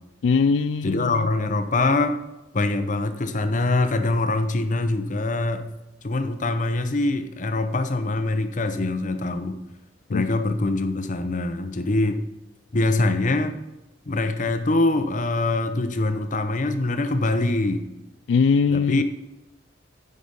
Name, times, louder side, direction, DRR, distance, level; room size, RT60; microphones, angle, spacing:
voice 1, 0.2-1.3 10.1-10.2 18.3-19.0, left 5 dB, 75° left, 11 dB, 0.3 m, -21 dB
voice 2, 0.8-2.2 2.5-5.7 6.0-9.6 10.1-12.2 12.7-13.5 14.1-17.9 18.7-19.0, left 2 dB, 40° left, 9 dB, 0.7 m, -24 dB
10.5 x 5.0 x 5.4 m, 1.0 s
head